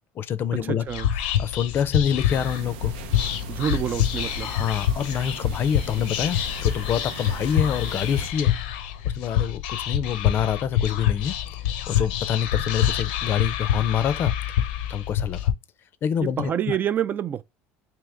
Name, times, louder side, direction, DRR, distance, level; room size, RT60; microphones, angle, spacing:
voice 1, 0.2-0.8 1.2-2.9 4.4-8.5 9.1-11.3 11.9-14.3 14.9-15.5 16.0-16.8, left 8 dB, 45° left, 0.4 m, -26 dB
voice 2, 0.7-1.1 3.5-4.5 16.2-17.4, right 9 dB, 40° right, 0.3 m, -27 dB
Whispering, 0.9-15.5, left 10 dB, 90° left, 0.6 m, -26 dB
sound 1, 2.3-8.3, right 8 dB, 90° right, 0.5 m, -41 dB
3.6 x 2.9 x 3.3 m
supercardioid pair, 100°, 5 cm